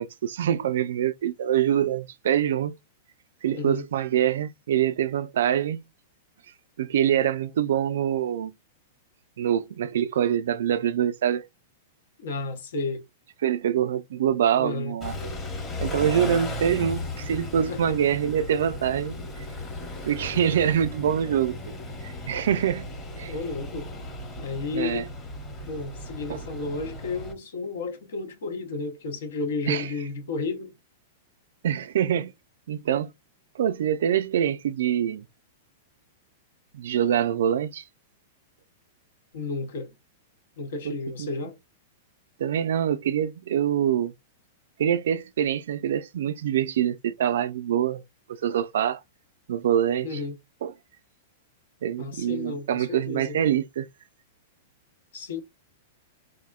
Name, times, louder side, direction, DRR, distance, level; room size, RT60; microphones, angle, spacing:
voice 1, 0.0-2.7 3.4-5.8 6.8-8.5 9.4-11.5 13.4-15.4 15.8-19.2 20.0-21.6 22.0-22.9 23.2-23.3 24.7-25.0 26.3-26.4 29.7-29.9 31.6-32.3 32.7-33.1 33.6-35.3 36.7-37.8 40.9-41.3 42.4-44.1 44.8-48.0 48.3-49.0 49.5-50.2 50.6-50.7 51.8-53.9, right 9 dB, 75° right, 0.3 m, -25 dB
voice 2, 3.5-3.9 12.2-13.0 14.6-15.0 17.7-18.0 23.2-23.9 24.4-25.1 25.7-30.7 39.3-39.9 40.6-41.6 50.0-50.3 52.0-53.4 55.1-55.4, left 3 dB, 80° left, 0.8 m, -32 dB
Car / Idling / Accelerating revving vroom, 15.0-27.3, left 1 dB, 20° left, 0.9 m, -36 dB
3.4 x 2.1 x 2.3 m
hypercardioid pair, 140°, 0 cm